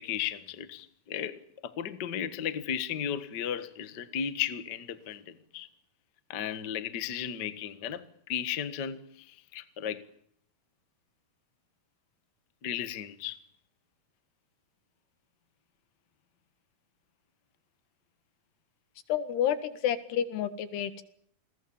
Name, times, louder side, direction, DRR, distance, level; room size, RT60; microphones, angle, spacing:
voice 1, 0.0-5.7 6.3-10.0 12.6-13.4, left 9 dB, 55° left, 1.2 m, -35 dB
voice 2, 19.1-21.0, left 9 dB, 85° left, 3.9 m, -29 dB
29.0 x 21.5 x 7.2 m
omnidirectional pair, 4.6 m